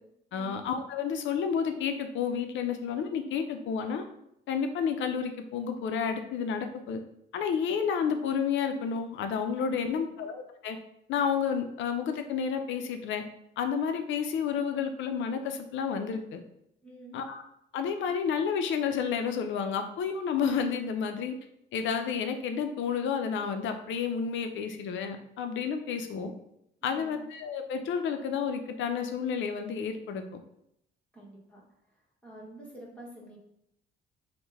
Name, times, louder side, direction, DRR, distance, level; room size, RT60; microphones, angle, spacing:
voice 1, 0.3-4.0 4.5-7.0 7.3-10.8 11.1-13.2 13.6-16.4 17.1-17.4 17.7-21.3 21.7-26.3 26.8-30.2, left 6 dB, 75° left, 7 dB, 0.5 m, -30 dB
voice 2, 9.7-10.3 16.8-17.2 26.9-27.2 31.1-31.6 32.2-33.4, right 1 dB, 5° left, -6 dB, 1.2 m, -48 dB
3.1 x 2.1 x 3.4 m, 0.77 s
cardioid pair, 90°, 20 cm